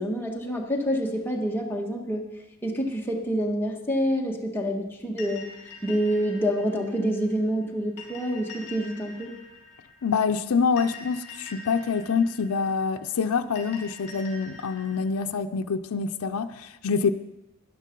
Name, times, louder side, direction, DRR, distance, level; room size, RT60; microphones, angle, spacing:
voice 1, 0.0-2.3 2.6-5.5 5.8-9.3, equal, 10° left, 1.6 m, -27 dB
sound 1, 5.2-15.0, left 4 dB, 30° left, 4.2 m, -46 dB
voice 2, 10.0-17.1, left 5 dB, 80° left, 0.5 m, -26 dB
13.0 x 10.5 x 5.3 m
head